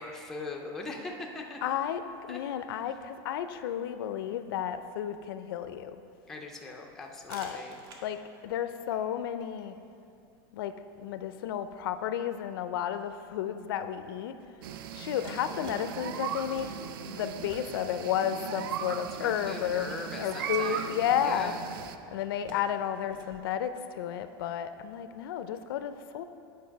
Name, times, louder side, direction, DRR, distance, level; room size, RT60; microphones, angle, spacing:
voice 1, 0.0-1.6 2.3-2.4 6.3-7.7 19.2-21.5, left 3 dB, 5° left, 0 dB, 0.3 m, -40 dB
voice 2, 1.6-6.0 7.3-7.6 8.0-9.7 10.5-14.3 14.9-16.7 17.0-19.9 20.2-21.5 22.1-26.2, left 9 dB, 75° left, 10 dB, 0.4 m, -32 dB
sound 1, 7.0-12.5, right 3 dB, 90° right, 1.2 m, -55 dB
sound 2, 14.6-22.0, right 9 dB, 70° right, 0.4 m, -38 dB
sound 3, 15.2-15.8 16.4-16.9 17.3-18.0 18.3-20.0 21.0-22.7 23.0-23.3, right 2 dB, 30° right, 0.8 m, -51 dB
8.5 x 4.6 x 4.5 m, 2.5 s
supercardioid pair, 180°, 12 cm